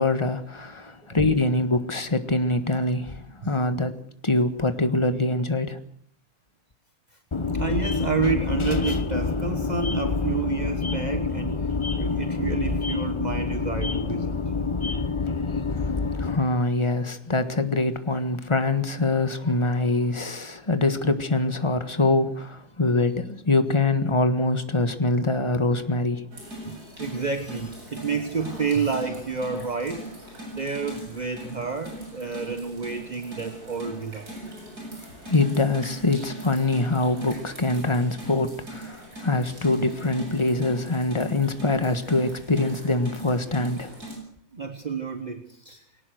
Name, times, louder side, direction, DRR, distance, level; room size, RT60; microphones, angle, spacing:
voice 1, 0.0-5.8 16.2-26.3 35.3-44.0, left 2 dB, 15° left, 1.3 m, -24 dB
sound 1, 7.3-16.4, left 4 dB, 45° left, 0.4 m, -27 dB
voice 2, 7.5-11.7 11.9-14.4 26.6-30.1 30.5-34.3 44.5-45.9, right 5 dB, 25° right, 1.0 m, -29 dB
sound 2, 26.3-44.2, right 1 dB, 45° right, 8.1 m, -40 dB
22.0 x 18.5 x 6.4 m
omnidirectional pair, 2.3 m